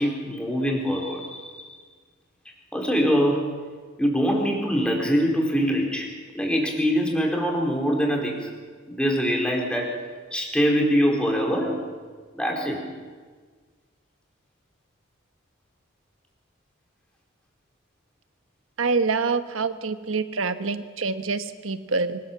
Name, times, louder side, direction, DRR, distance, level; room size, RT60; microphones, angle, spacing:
voice 1, 0.0-1.6 2.7-3.5 4.0-6.1 6.3-8.5 8.9-9.9 10.3-11.8 12.4-12.8, equal, 5° left, -1 dB, 4.1 m, -23 dB
voice 2, 18.8-22.2, right 4 dB, 85° right, 10 dB, 1.3 m, -26 dB
24.5 x 18.5 x 7.3 m, 1.5 s
head